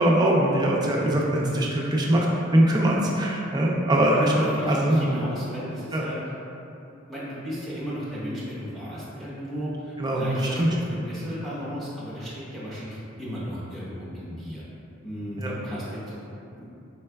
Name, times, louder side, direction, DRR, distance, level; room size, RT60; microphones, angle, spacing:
voice 1, 0.0-2.3 2.5-4.3 4.7-5.1 5.9-6.0 10.0-10.7 15.4-15.5, right 1 dB, 20° right, -2 dB, 0.4 m, -22 dB
voice 2, 4.1-6.2 6.8-14.7 15.0-16.8, equal, ahead, -10 dB, 1.0 m, -34 dB
4.6 x 3.2 x 2.2 m, 2.8 s
head